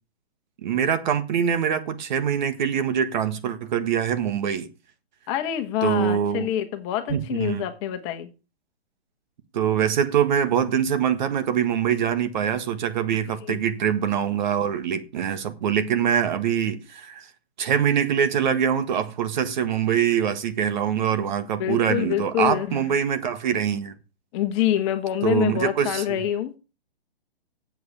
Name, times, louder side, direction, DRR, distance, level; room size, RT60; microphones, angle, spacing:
voice 1, 0.6-4.7 5.8-6.5 7.1-7.6 9.5-17.3 17.6-23.9 25.2-26.2, right 8 dB, 45° right, 1.6 m, -24 dB
voice 2, 5.3-8.3 13.3-13.6 21.6-22.8 24.3-26.5, left 11 dB, 30° left, 1.6 m, -26 dB
8.0 x 7.9 x 8.8 m
hypercardioid pair, 140°, 31 cm